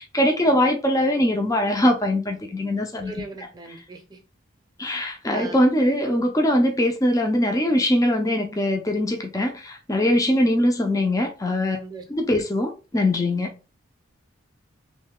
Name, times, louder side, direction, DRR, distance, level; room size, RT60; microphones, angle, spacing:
voice 1, 0.0-3.1 3.7-3.8 4.8-11.8 12.1-13.5, left 1 dB, 15° left, 0.5 m, -22 dB
voice 2, 3.0-4.2 5.3-5.6 11.7-12.0, right 3 dB, 20° right, 0.7 m, -39 dB
3.1 x 2.7 x 3.6 m
head